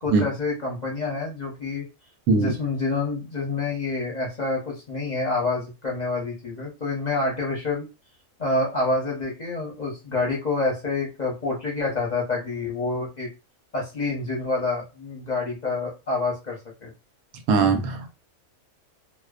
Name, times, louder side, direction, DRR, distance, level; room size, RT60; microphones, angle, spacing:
voice 1, 0.0-1.9 2.3-7.9 8.4-13.3 13.7-16.9, left 3 dB, 40° left, 0.6 m, -27 dB
voice 2, 17.5-18.1, right 4 dB, 90° right, 1.1 m, -20 dB
2.5 x 2.2 x 2.3 m
omnidirectional pair, 1.5 m